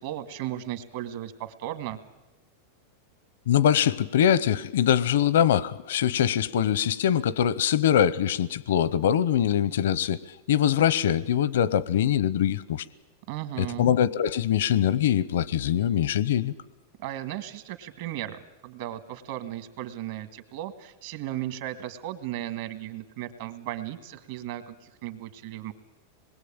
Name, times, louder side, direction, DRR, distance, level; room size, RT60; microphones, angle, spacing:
voice 1, 0.0-2.0 13.3-13.8 17.0-25.7, right 13 dB, 60° right, 10 dB, 1.9 m, -36 dB
voice 2, 3.5-10.2 10.5-12.8 13.6-16.5, left 10 dB, 80° left, 20 dB, 0.8 m, -23 dB
26.5 x 21.0 x 8.9 m, 1.0 s
supercardioid pair, 150°, 0 cm